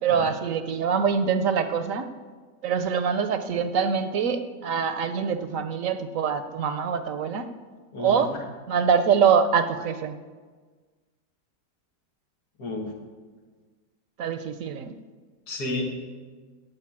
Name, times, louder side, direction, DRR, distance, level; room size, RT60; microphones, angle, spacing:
voice 1, 0.0-2.1 2.6-7.5 8.0-8.3 8.7-10.2 14.2-14.9, right 6 dB, 65° right, 10 dB, 1.0 m, -24 dB
voice 2, 7.9-8.4 12.6-12.9 15.5-15.8, left 2 dB, 85° left, 1 dB, 2.4 m, -32 dB
16.0 x 5.3 x 8.7 m, 1.4 s
omnidirectional pair, 1.6 m